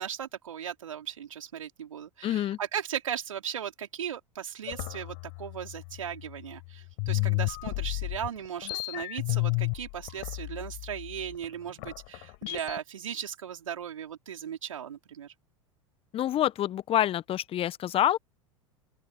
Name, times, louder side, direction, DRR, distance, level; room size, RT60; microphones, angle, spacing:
voice 1, 0.0-15.3, right 9 dB, 75° right, 3.8 m, -37 dB
voice 2, 2.2-2.6 16.1-18.2, left 12 dB, 35° left, 1.2 m, -27 dB
sound 1, 4.7-6.6 7.0-12.8, left 40 dB or more, 55° left, 5.0 m, -33 dB
open air
figure-of-eight pair, 85°, 17 cm